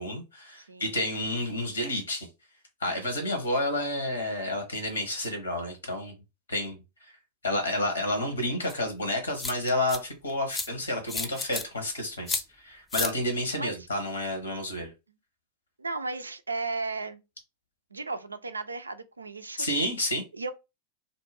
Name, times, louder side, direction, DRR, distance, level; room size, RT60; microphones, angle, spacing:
voice 1, 0.0-2.3 2.8-6.1 6.5-6.8 7.4-14.9 19.6-20.2, left 1 dB, 75° left, 0.9 m, -30 dB
sound 1, 8.7-8.8 9.4-10.0 10.5-10.7 11.1-11.6 12.3-12.4 12.9-13.1, left 3 dB, 15° left, 0.4 m, -31 dB
voice 2, 15.8-17.2 17.9-19.7 20.3-20.5, right 3 dB, 80° right, 0.3 m, -34 dB
2.5 x 2.2 x 3.3 m
figure-of-eight pair, 90°, 0 cm